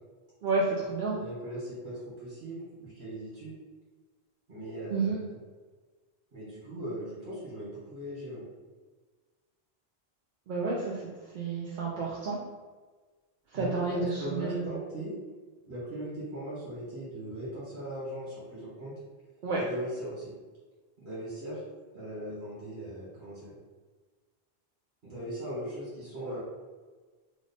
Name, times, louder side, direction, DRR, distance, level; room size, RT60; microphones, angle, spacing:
voice 1, 0.4-1.2 4.9-5.2 10.5-11.0 11.3-12.4 13.5-14.6 19.4-19.6, right 3 dB, 60° right, -4 dB, 0.6 m, -30 dB
voice 2, 1.1-3.5 4.5-5.3 6.3-8.4 13.5-15.1 15.6-19.0 19.5-20.3 21.0-21.6 21.9-23.5 25.0-26.4, right 1 dB, 90° right, -10 dB, 1.5 m, -39 dB
3.1 x 2.0 x 3.9 m, 1.4 s
omnidirectional pair, 1.0 m